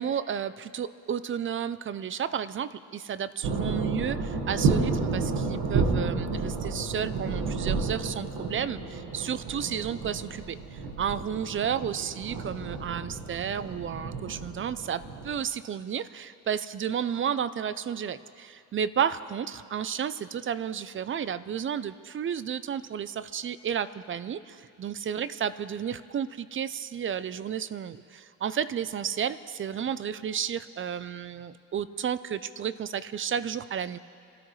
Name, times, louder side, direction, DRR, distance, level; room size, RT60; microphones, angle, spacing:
voice 1, 0.0-34.0, right 8 dB, 35° right, 15 dB, 0.5 m, -32 dB
sound 1, 3.4-15.4, right 4 dB, 80° right, 1.7 m, -31 dB
26.5 x 13.0 x 3.2 m, 2.4 s
cardioid pair, 90°, 36 cm